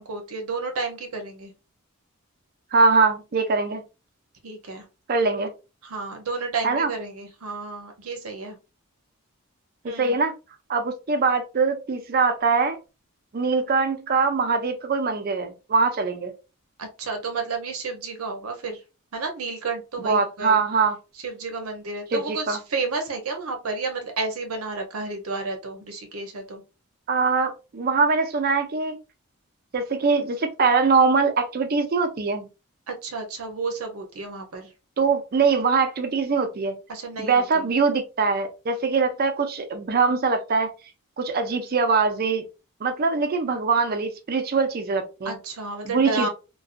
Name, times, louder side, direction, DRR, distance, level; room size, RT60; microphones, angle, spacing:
voice 1, 0.0-1.5 4.4-4.8 5.8-8.6 9.8-10.2 16.8-18.8 19.1-20.6 21.2-26.6 32.9-34.7 36.9-37.7 45.2-46.3, right 3 dB, 75° right, 5 dB, 0.7 m, -31 dB
voice 2, 2.7-3.8 5.1-5.5 6.6-6.9 9.8-10.3 10.7-12.8 13.3-16.3 20.0-21.0 22.1-22.6 27.1-29.0 29.7-32.5 35.0-36.8 37.2-40.7 41.2-42.4 42.8-45.4 45.8-46.3, right 4 dB, 45° right, 7 dB, 0.4 m, -22 dB
2.4 x 2.2 x 2.4 m, 0.29 s
head